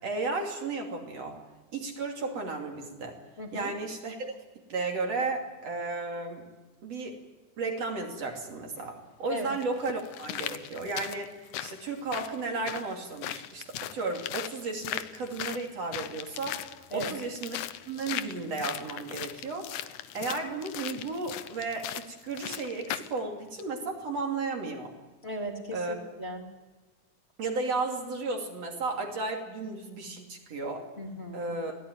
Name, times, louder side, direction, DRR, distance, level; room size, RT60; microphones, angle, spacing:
voice 1, 0.0-1.4 1.7-3.2 3.5-4.4 4.7-6.5 6.8-7.2 7.6-19.9 20.1-24.9 25.7-26.0 27.4-30.9 31.3-31.8, right 3 dB, 55° right, 2 dB, 3.8 m, -34 dB
voice 2, 3.4-3.7 9.3-9.5 16.9-17.1 25.2-26.4 31.0-31.5, equal, 20° left, 1 dB, 3.5 m, -36 dB
sound 1, 8.8-8.9 9.6-23.2 23.6-23.7, left 12 dB, 85° left, 2.3 m, -39 dB
25.0 x 17.5 x 9.7 m, 1.2 s
omnidirectional pair, 3.4 m